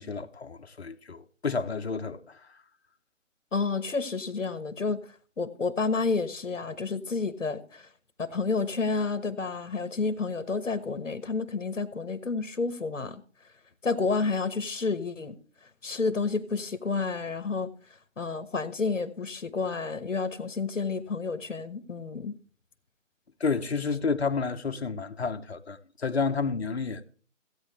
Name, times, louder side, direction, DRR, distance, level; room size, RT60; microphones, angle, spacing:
voice 1, 0.0-2.4 23.4-27.1, left 4 dB, 55° left, 1.0 m, -30 dB
voice 2, 3.5-5.0 5.4-7.9 8.2-13.2 13.8-15.3 15.8-17.7 18.2-22.3, left 4 dB, 70° left, 1.3 m, -30 dB
16.5 x 8.5 x 3.3 m
figure-of-eight pair, 160°, 38 cm